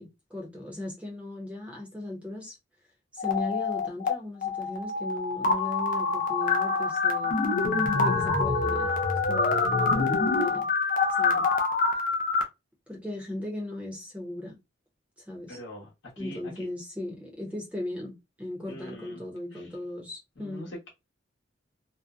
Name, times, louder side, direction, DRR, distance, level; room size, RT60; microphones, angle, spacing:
voice 1, 0.0-2.5 3.1-7.4 7.9-8.9 9.2-10.7 11.2-11.5 12.9-14.6 15.3-15.6 16.2-20.7, left 1 dB, 5° right, 0.7 m, -37 dB
sound 1, 3.2-4.1 4.4-12.4, left 4 dB, 40° left, 0.4 m, -26 dB
voice 2, 15.5-16.7 18.6-19.2 19.5-19.8 20.4-20.9, left 1 dB, 65° left, 1.0 m, -43 dB
2.6 x 2.1 x 2.4 m
head